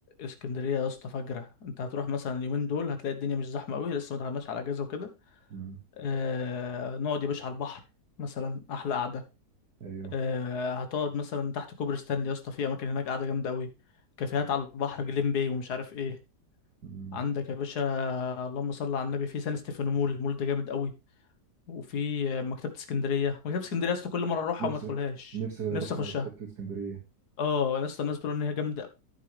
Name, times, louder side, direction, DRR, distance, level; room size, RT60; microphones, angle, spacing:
voice 1, 0.2-5.1 6.0-7.8 8.2-9.2 10.1-13.7 14.2-16.2 17.1-20.9 21.7-25.4 25.7-26.3 27.4-28.9, left 5 dB, 65° left, 8 dB, 1.9 m, -31 dB
voice 2, 9.8-10.1 16.8-17.2 24.6-24.9 25.3-26.1 26.6-27.0, right 7 dB, 65° right, 0 dB, 2.5 m, -36 dB
10.5 x 8.4 x 3.4 m, 0.26 s
omnidirectional pair, 1.8 m